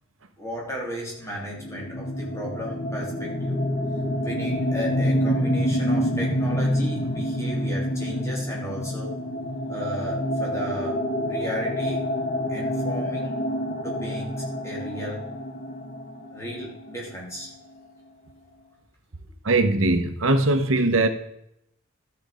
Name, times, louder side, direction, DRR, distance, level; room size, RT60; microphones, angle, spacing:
voice 1, 0.4-3.6 4.2-9.1 9.7-11.0 11.3-12.1 12.5-13.4 13.8-15.3 16.3-17.5, equal, 15° left, -3 dB, 3.2 m, -35 dB
sound 1, 1.6-17.2, equal, 35° left, 1.2 m, -27 dB
voice 2, 19.4-21.1, right 2 dB, 80° right, 8 dB, 1.1 m, -20 dB
12.5 x 7.0 x 5.1 m, 0.77 s
head